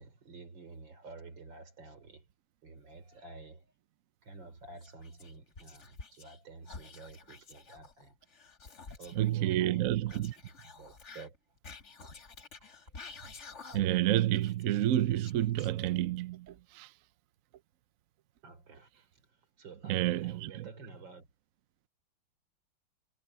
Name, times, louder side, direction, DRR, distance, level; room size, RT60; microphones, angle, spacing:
voice 1, 0.0-2.2 2.6-3.6 4.2-8.1 8.9-10.3 10.6-11.4 12.6-12.7 18.4-19.1 19.6-21.3, right 3 dB, 90° right, 4.2 m, -50 dB
Whispering, 4.8-6.4 6.6-9.3 10.1-14.0 14.3-16.1, left 4 dB, 40° left, 1.8 m, -50 dB
voice 2, 9.2-10.3 13.7-16.9 19.9-20.7, right 13 dB, 65° right, 0.9 m, -29 dB
omnidirectional pair, 2.0 m